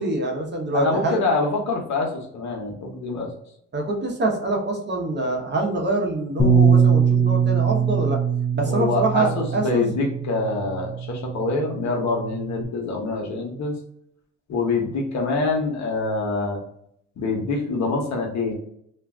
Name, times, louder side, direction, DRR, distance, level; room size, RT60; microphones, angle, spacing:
voice 1, 0.0-1.2 3.7-8.2 8.5-9.9, right 2 dB, 35° right, 1 dB, 0.8 m, -25 dB
voice 2, 0.7-3.3 8.6-13.8 14.5-16.6 17.2-18.5, left 3 dB, 65° left, 1 dB, 0.9 m, -25 dB
Bass guitar, 6.4-12.6, right 6 dB, 25° left, 0.6 m, -22 dB
2.5 x 2.3 x 3.2 m, 0.70 s
cardioid pair, 90°, 30 cm